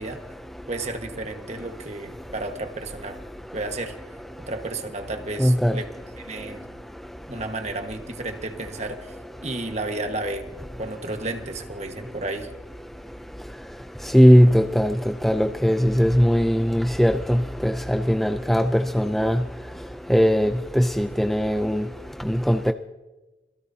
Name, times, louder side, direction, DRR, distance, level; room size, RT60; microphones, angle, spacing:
voice 1, 0.0-7.6 8.0-9.6 10.6-22.7, equal, ahead, 7 dB, 0.4 m, -23 dB
voice 2, 0.7-3.2 3.5-4.0 4.4-5.9 6.2-6.7 7.3-9.2 9.4-10.5 10.8-12.5, right 2 dB, 40° right, 5 dB, 1.5 m, -32 dB
26.0 x 17.0 x 2.8 m, 1.1 s
head